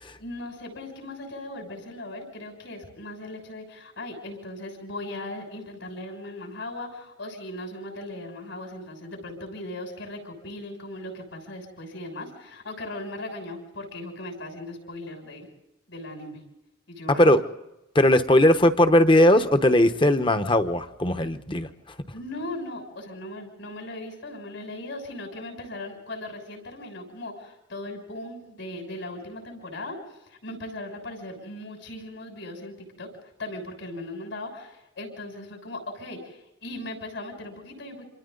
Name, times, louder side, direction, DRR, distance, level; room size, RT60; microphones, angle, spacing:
voice 1, 0.2-15.5 15.9-16.4 16.9-17.3 22.1-30.0 30.2-33.1 33.4-38.1, left 1 dB, 70° left, 2 dB, 6.7 m, -38 dB
voice 2, 17.1-17.4 17.9-21.7, left 1 dB, 25° left, 9 dB, 1.0 m, -19 dB
28.0 x 26.5 x 4.0 m, 0.94 s
head